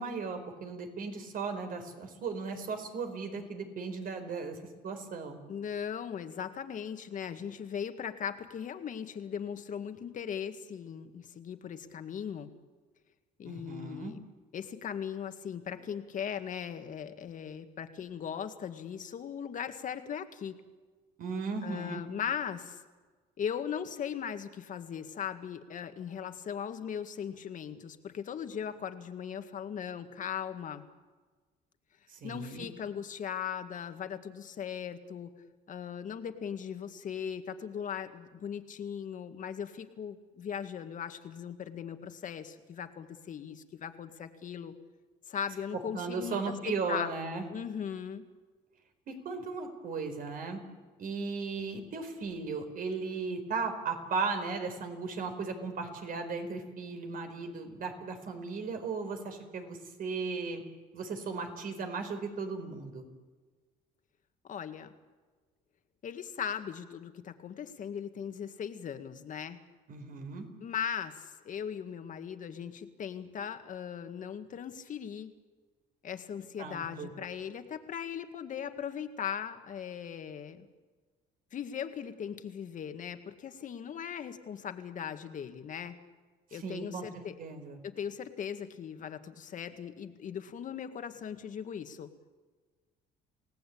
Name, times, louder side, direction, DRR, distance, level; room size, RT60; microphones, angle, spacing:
voice 1, 0.0-4.6 4.8-5.4 13.4-14.1 21.2-22.0 32.1-32.7 45.9-47.5 49.1-50.6 51.0-60.6 60.9-63.0 69.9-70.5 76.6-77.1 86.5-87.1 87.4-87.8, right 4 dB, 55° right, 6 dB, 4.8 m, -36 dB
voice 2, 5.5-12.5 13.4-14.2 14.5-20.6 21.6-22.8 23.4-30.8 32.2-35.3 35.7-44.7 45.3-47.1 47.5-48.3 64.4-64.9 66.0-69.6 70.6-75.3 76.0-80.7 81.5-86.0 86.5-87.4 87.8-92.1, left 8 dB, 50° left, 8 dB, 2.0 m, -39 dB
29.0 x 17.5 x 8.7 m, 1.4 s
cardioid pair, 110°, 17 cm